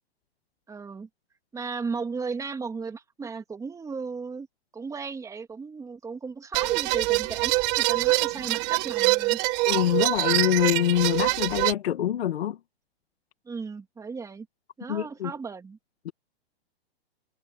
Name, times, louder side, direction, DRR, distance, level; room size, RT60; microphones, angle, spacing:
voice 1, 0.7-1.1 1.5-4.5 4.7-9.4 13.4-14.5 14.8-15.8, right 5 dB, 10° right, 2.6 m, -35 dB
sound 1, 6.5-11.7, right 23 dB, 35° right, 2.5 m, -24 dB
voice 2, 9.7-12.6 14.9-15.3 16.1-16.2, left 11 dB, 75° left, 2.2 m, -25 dB
hypercardioid pair, 140°, 31 cm